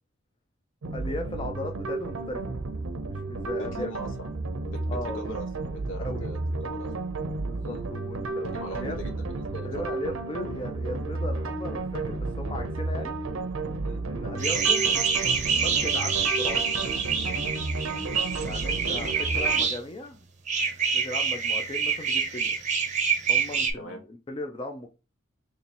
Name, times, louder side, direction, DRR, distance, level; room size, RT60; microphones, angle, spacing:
sound 1, 0.8-19.6, right 3 dB, 85° right, 0.6 m, -32 dB
voice 1, 0.9-2.4 3.0-3.9 4.9-5.2 6.0-6.3 7.4-9.0 9.6-13.1 14.1-14.9 15.6-16.6 18.4-20.2 20.9-22.6 23.3-24.9, left 2 dB, 25° left, 0.4 m, -37 dB
voice 2, 3.4-4.3 4.6-6.9 7.6-7.8 8.4-9.9 13.8-14.0 17.8-18.1 23.7-24.0, equal, 70° left, 1.1 m, -40 dB
sound 2, 14.4-19.8 20.5-23.7, right 6 dB, 35° right, 0.7 m, -26 dB
3.1 x 2.8 x 4.2 m
head